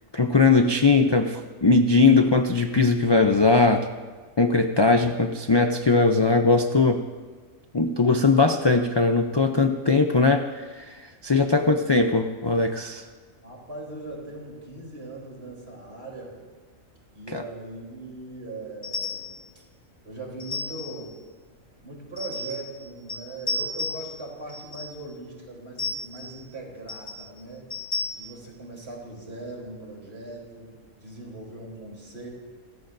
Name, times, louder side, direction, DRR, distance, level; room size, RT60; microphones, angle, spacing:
voice 1, 0.1-3.9 4.4-7.0 7.7-13.1 17.3-17.4, left 3 dB, 40° left, 5 dB, 0.3 m, -20 dB
voice 2, 13.4-16.4 17.1-19.4 20.0-21.1 21.8-27.7 28.1-30.7 31.0-32.3, right 2 dB, 50° right, -2 dB, 3.9 m, -40 dB
sound 1, 18.8-19.4 20.4-21.1 22.2-22.8 23.1-24.2 24.5-25.0 25.8-26.4 26.9-27.2 27.7-28.1, left 2 dB, 65° left, 5.5 m, -33 dB
28.0 x 14.0 x 2.6 m, 1.5 s
omnidirectional pair, 1.4 m